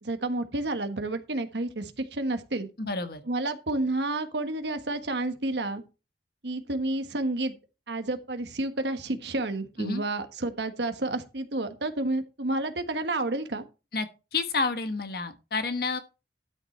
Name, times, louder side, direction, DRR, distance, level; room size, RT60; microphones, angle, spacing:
voice 1, 0.0-2.7 3.3-5.8 6.4-7.5 7.9-13.6, right 2 dB, 75° right, 1.4 m, -30 dB
voice 2, 2.8-3.2 9.8-10.0 13.9-14.1 14.3-16.0, left 4 dB, 60° left, 1.4 m, -29 dB
12.5 x 6.5 x 4.3 m
head